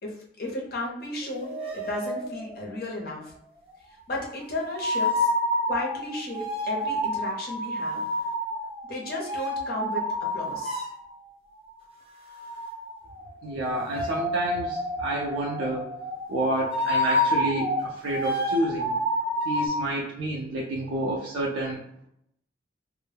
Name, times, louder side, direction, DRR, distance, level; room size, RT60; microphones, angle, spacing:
voice 1, 0.0-3.3 4.1-5.3 5.7-8.0 8.8-10.9, left 2 dB, 50° left, -2 dB, 0.7 m, -34 dB
sound 1, 1.2-2.7 4.7-11.0 12.3-19.7, left 1 dB, 30° right, 0.4 m, -29 dB
voice 2, 13.4-15.9 16.3-18.9 19.5-21.8, right 1 dB, 85° right, -2 dB, 0.4 m, -29 dB
2.1 x 2.0 x 3.2 m, 0.73 s
head